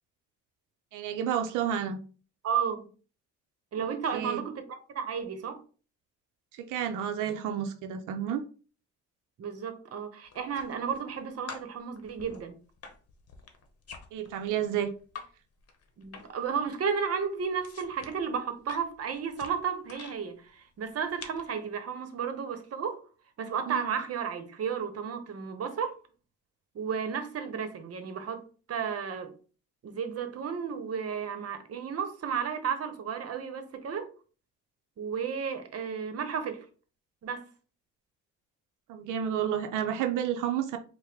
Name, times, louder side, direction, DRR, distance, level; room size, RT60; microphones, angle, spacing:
voice 1, 0.9-2.0 3.8-3.9 4.1-4.4 6.5-8.4 14.1-14.9 23.7-23.9 38.9-40.8, right 9 dB, 90° right, 0.6 m, -30 dB
voice 2, 2.4-2.9 3.7-5.6 9.4-12.6 16.0-23.0 23.4-25.9 26.7-28.4 28.7-29.3 29.8-34.1 35.0-36.7 37.2-37.5, right 6 dB, 55° right, 0.9 m, -33 dB
sound 1, 10.3-11.2 11.5-15.3 15.6-16.5 16.7-20.2 20.8-21.5, left 5 dB, 55° left, 0.9 m, -47 dB
4.6 x 2.1 x 3.4 m
cardioid pair, 90°, 30 cm